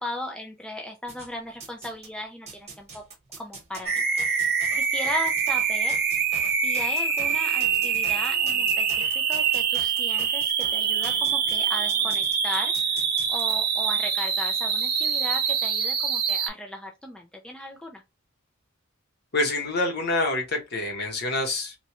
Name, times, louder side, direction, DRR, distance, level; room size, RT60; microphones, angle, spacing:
voice 1, 0.0-3.0 3.4-6.3 6.6-13.0 13.3-18.0, left 1 dB, 5° left, 0.4 m, -37 dB
sound 1, 1.1-2.1 2.5-13.6, right 3 dB, 30° right, 1.0 m, -44 dB
sound 2, 3.9-16.5, right 6 dB, 50° right, 0.7 m, -25 dB
voice 2, 19.3-21.8, left 2 dB, 50° left, 1.0 m, -26 dB
3.1 x 2.3 x 2.9 m
head